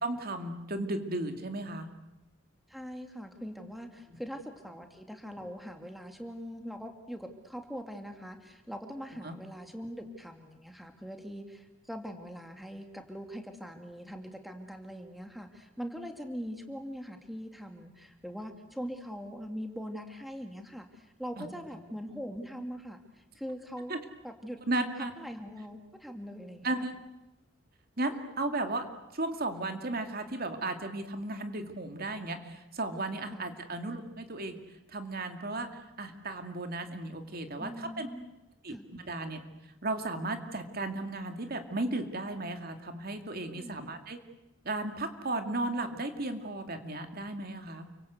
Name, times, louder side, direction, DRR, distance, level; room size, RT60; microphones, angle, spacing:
voice 1, 0.0-1.9 9.2-9.4 21.4-21.5 23.9-24.0 24.7-25.1 26.6-26.9 28.0-28.9 29.1-34.6 34.9-35.7 36.0-38.1 38.6-38.8 39.0-39.4 39.8-44.2 44.6-47.9, right 2 dB, 50° right, 7 dB, 2.5 m, -35 dB
voice 2, 2.7-24.0 24.2-24.6 25.0-26.9 33.3-33.5 37.6-38.3 38.7-38.8 43.5-43.8, equal, ahead, 5 dB, 2.3 m, -42 dB
29.5 x 24.5 x 8.2 m, 0.97 s
head